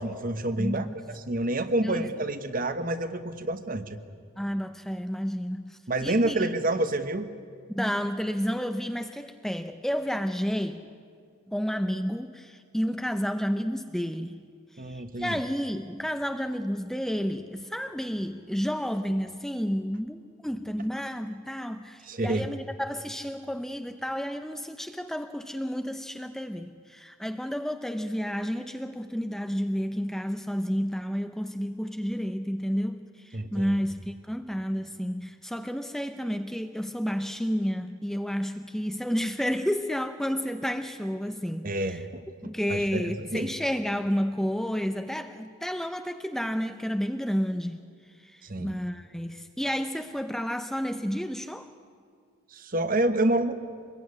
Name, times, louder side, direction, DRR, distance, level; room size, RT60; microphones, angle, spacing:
voice 1, 0.0-4.0 5.9-7.3 14.8-15.4 22.1-22.5 33.3-33.8 41.6-43.5 48.4-48.7 52.5-53.5, right 1 dB, 40° right, 10 dB, 1.2 m, -28 dB
voice 2, 0.6-1.0 1.8-2.1 4.4-6.5 7.7-10.8 11.5-14.4 14.7-42.1 42.4-47.8 48.2-51.7, equal, ahead, 7 dB, 0.6 m, -31 dB
25.5 x 21.5 x 9.7 m, 2.2 s
head